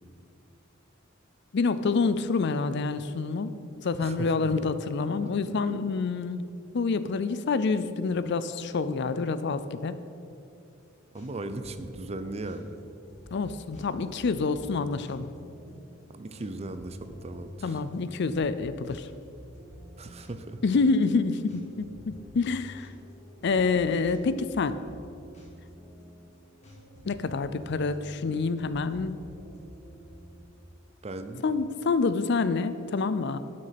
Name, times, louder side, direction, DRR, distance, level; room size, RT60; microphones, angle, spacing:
voice 1, 1.5-3.5 3.8-6.5 6.7-10.0 13.3-15.3 17.6-19.1 20.6-22.9 23.4-24.8 27.1-29.2 31.4-33.4, left 4 dB, 60° left, 13 dB, 0.5 m, -27 dB
voice 2, 4.0-4.3 11.1-12.8 16.1-17.7 20.0-20.6 31.0-31.4, right 2 dB, 30° right, 10 dB, 0.6 m, -37 dB
sound 1, 10.7-30.4, equal, 35° left, 2.1 m, -49 dB
11.5 x 6.5 x 5.8 m, 2.5 s
head